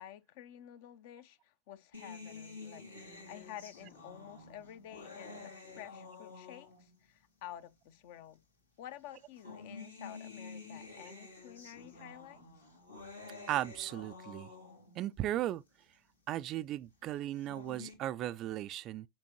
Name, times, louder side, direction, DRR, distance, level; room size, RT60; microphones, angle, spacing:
voice 1, 0.0-8.4 8.8-12.4, left 11 dB, 50° left, 0.7 m, -50 dB
sound 1, 1.9-7.0 7.9-8.0 9.1-15.0 17.2-17.9, left 3 dB, 80° left, 2.1 m, -50 dB
voice 2, 13.5-14.5 15.0-15.6 16.3-19.1, right 13 dB, 35° right, 0.3 m, -36 dB
7.4 x 4.9 x 3.0 m
figure-of-eight pair, 90°, 0 cm